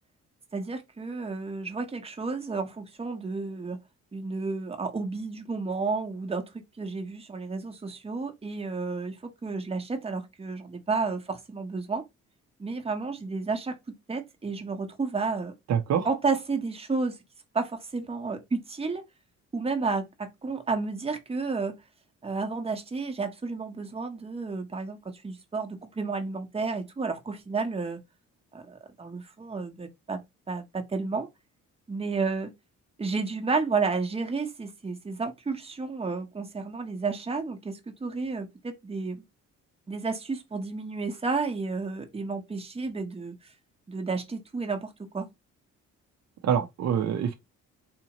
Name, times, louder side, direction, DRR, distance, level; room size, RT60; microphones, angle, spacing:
voice 1, 0.5-3.8 4.1-6.4 6.8-12.0 12.6-13.8 14.1-15.5 16.0-17.2 17.5-19.0 19.5-21.8 22.2-28.0 28.5-30.2 30.5-31.3 31.9-32.5 33.0-39.2 39.9-43.3 43.9-45.3, right 4 dB, 20° right, 0.9 m, -31 dB
voice 2, 15.7-16.1 46.4-47.3, right 8 dB, 60° right, 0.7 m, -25 dB
3.6 x 2.8 x 2.9 m
cardioid pair, 90°, 30 cm